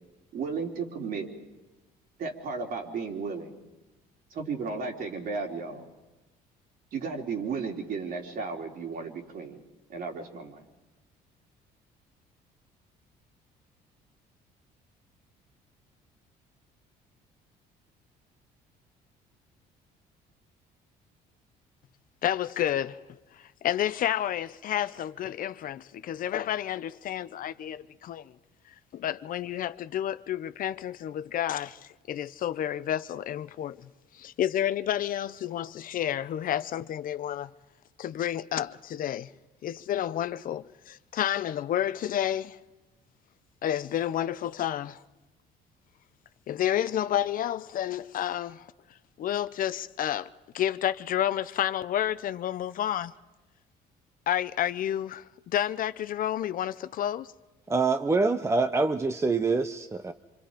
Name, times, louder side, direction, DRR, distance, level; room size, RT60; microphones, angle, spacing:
voice 1, 0.3-1.3 2.2-3.5 4.3-5.8 6.9-9.6 9.9-10.6, right 5 dB, 60° right, 3.4 m, -34 dB
voice 2, 22.2-23.0 23.4-28.3 28.9-33.9 34.1-37.5 38.0-39.3 39.6-42.6 43.6-45.0 46.5-48.7 49.2-50.3 50.5-53.1 54.3-57.3, left 11 dB, 55° left, 0.7 m, -30 dB
voice 3, 57.7-60.1, right 3 dB, 15° right, 0.8 m, -25 dB
26.5 x 25.5 x 5.1 m
cardioid pair, 110°, 17 cm